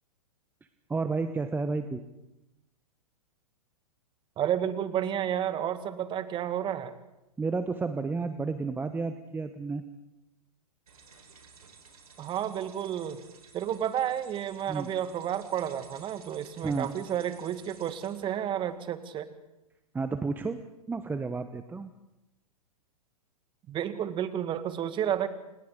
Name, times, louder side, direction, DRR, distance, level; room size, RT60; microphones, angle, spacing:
voice 1, 0.9-2.0 7.4-9.8 14.7-14.9 16.6-16.9 19.9-20.6 20.9-21.9, right 4 dB, 10° right, 9 dB, 1.0 m, -31 dB
voice 2, 4.4-6.9 12.2-13.2 13.5-19.3 23.7-25.3, right 10 dB, 25° right, 11 dB, 1.8 m, -31 dB
sound 1, 10.9-18.8, right 5 dB, 75° right, 4.7 m, -54 dB
30.0 x 26.5 x 3.9 m, 0.95 s
figure-of-eight pair, 105°, 19 cm